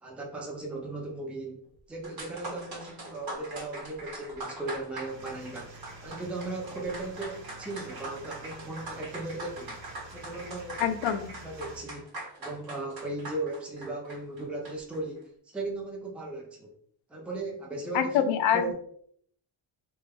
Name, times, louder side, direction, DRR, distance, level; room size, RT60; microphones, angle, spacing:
voice 1, 0.0-1.6 1.9-5.7 6.0-9.8 10.1-10.9 11.4-12.1 12.4-16.7 17.1-18.2 18.5-18.7, right 2 dB, 5° right, -1 dB, 0.5 m, -37 dB
sound 1, 1.7-1.8 2.0-15.0, right 2 dB, 55° right, 0.9 m, -42 dB
sound 2, 5.0-11.8, right 2 dB, 80° right, 0.9 m, -49 dB
voice 2, 10.8-11.4 17.9-18.7, left 9 dB, 80° left, 9 dB, 0.6 m, -26 dB
3.8 x 2.3 x 3.4 m, 0.63 s
cardioid pair, 150°, 46 cm